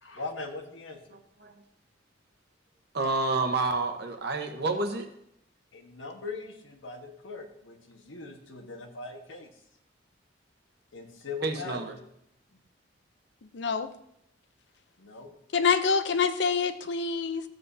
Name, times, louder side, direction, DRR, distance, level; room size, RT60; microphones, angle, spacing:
voice 1, 0.0-1.2 5.7-9.5 10.9-12.0 15.0-15.3, left 3 dB, 90° left, 3 dB, 1.4 m, -40 dB
voice 2, 2.9-5.1 11.4-11.9, right 3 dB, 60° right, 5 dB, 1.1 m, -29 dB
voice 3, 13.5-13.9 15.5-17.4, left 5 dB, 65° left, 11 dB, 0.6 m, -26 dB
14.0 x 7.9 x 2.8 m, 0.76 s
head